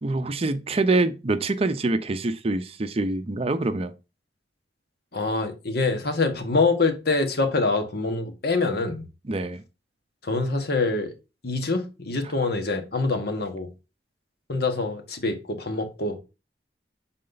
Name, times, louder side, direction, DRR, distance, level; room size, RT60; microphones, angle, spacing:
voice 1, 0.0-3.9 9.3-9.6, right 2 dB, 35° right, 0.5 m, -25 dB
voice 2, 5.1-9.0 10.2-11.1 11.4-13.7 14.5-16.2, left 3 dB, 60° left, 1.3 m, -25 dB
6.5 x 4.2 x 3.9 m
head